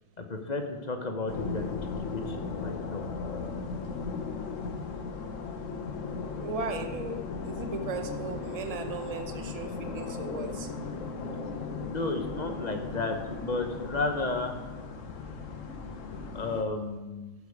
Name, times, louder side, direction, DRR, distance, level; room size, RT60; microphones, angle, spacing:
voice 1, 0.2-1.7 2.0-2.4 2.6-3.0 11.9-14.6 16.3-17.3, left 3 dB, 35° left, 5 dB, 1.0 m, -32 dB
sound 1, 1.3-16.6, left 4 dB, 85° left, 1.3 m, -37 dB
voice 2, 6.4-10.7, right 4 dB, 35° right, 6 dB, 0.8 m, -36 dB
12.5 x 6.7 x 4.8 m, 1.2 s
omnidirectional pair, 1.3 m